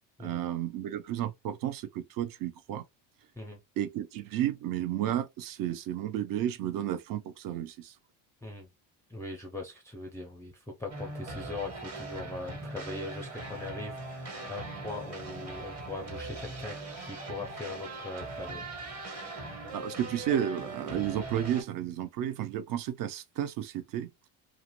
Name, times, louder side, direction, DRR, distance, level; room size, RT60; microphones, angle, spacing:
voice 1, 0.2-2.8 3.8-7.9 19.7-24.1, right 11 dB, 50° right, 0.6 m, -32 dB
voice 2, 8.4-8.7 9.1-18.6, left 2 dB, 5° left, 0.4 m, -41 dB
sound 1, 10.9-21.6, right 2 dB, 35° right, 1.4 m, -40 dB
2.5 x 2.5 x 2.9 m
cardioid pair, 115°, 45 cm